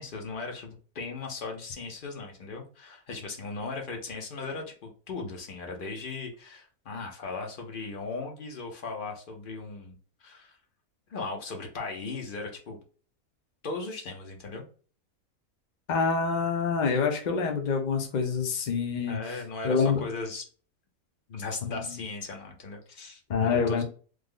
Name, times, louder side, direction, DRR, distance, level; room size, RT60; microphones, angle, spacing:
voice 1, 0.0-10.6 11.1-12.8 13.6-14.7 19.1-20.4 21.3-23.8, left 3 dB, 45° left, 2 dB, 0.7 m, -37 dB
voice 2, 15.9-20.0 21.6-21.8 23.3-23.8, left 5 dB, 70° left, 2 dB, 0.4 m, -27 dB
3.2 x 2.0 x 3.5 m, 0.39 s
omnidirectional pair, 1.5 m